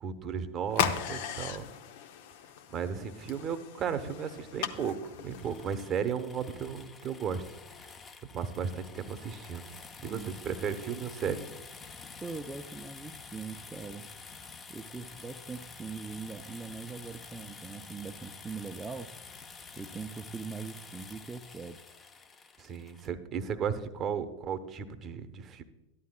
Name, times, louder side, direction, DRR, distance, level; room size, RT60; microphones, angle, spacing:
voice 1, 0.0-1.6 2.7-7.6 8.3-9.7 10.0-11.4 22.6-25.6, right 7 dB, 35° right, 10 dB, 0.9 m, -35 dB
sound 1, 0.7-5.9, left 9 dB, 60° left, 0.8 m, -37 dB
sound 2, 5.4-23.1, left 4 dB, 25° left, 0.8 m, -49 dB
voice 2, 12.2-14.1 14.7-19.1 19.8-21.9, right 4 dB, 15° right, 3 dB, 0.6 m, -41 dB
13.5 x 11.5 x 2.3 m, 1.0 s
hypercardioid pair, 90°, 0 cm